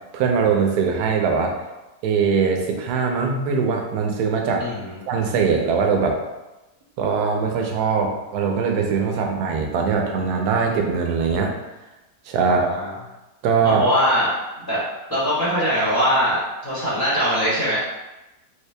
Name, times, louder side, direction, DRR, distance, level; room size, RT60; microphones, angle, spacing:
voice 1, 0.1-1.6 2.0-4.6 5.1-6.2 7.0-11.5 12.3-12.7 13.4-13.9, right 5 dB, 75° right, 2 dB, 1.1 m, -21 dB
voice 2, 4.6-5.0 9.1-9.2 12.5-12.9 13.6-14.8 15.1-17.8, equal, 15° left, -10 dB, 0.9 m, -22 dB
3.3 x 2.8 x 3.2 m, 1.0 s
omnidirectional pair, 1.8 m